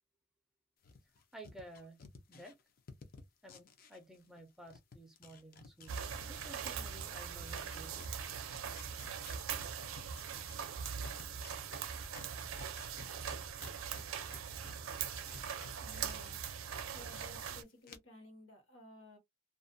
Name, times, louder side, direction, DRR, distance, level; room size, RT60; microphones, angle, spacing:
sound 1, 0.8-4.4 4.7-16.1 16.5-17.4 17.8-18.0, left 4 dB, 45° left, 0.5 m, -55 dB
voice 1, 1.3-2.0 2.3-2.6 3.4-8.1, right 1 dB, ahead, 0.5 m, -54 dB
sound 2, 5.9-17.6, right 7 dB, 85° right, 0.4 m, -41 dB
voice 2, 15.8-16.4 16.8-19.2, left 2 dB, 65° left, 1.1 m, -56 dB
2.4 x 2.1 x 2.5 m
head